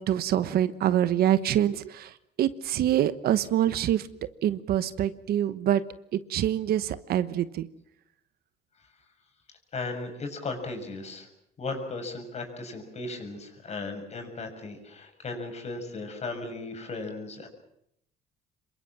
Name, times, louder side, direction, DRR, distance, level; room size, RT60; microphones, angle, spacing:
voice 1, 0.0-2.1 2.4-4.0 4.4-5.8 6.1-7.7, right 11 dB, 65° right, 13 dB, 1.2 m, -25 dB
voice 2, 9.7-11.3 11.6-17.5, left 3 dB, 40° left, 5 dB, 6.8 m, -36 dB
26.5 x 23.0 x 7.6 m, 0.74 s
cardioid pair, 110°, 17 cm